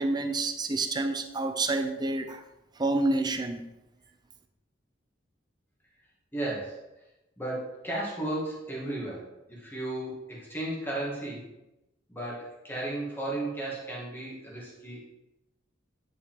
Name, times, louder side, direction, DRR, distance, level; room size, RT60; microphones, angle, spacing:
voice 1, 0.0-2.4 2.8-3.6, right 2 dB, 20° right, 0.6 m, -28 dB
voice 2, 6.3-6.8 7.4-11.5 12.1-15.1, right 1 dB, 10° left, 2.1 m, -34 dB
9.6 x 5.3 x 3.7 m
head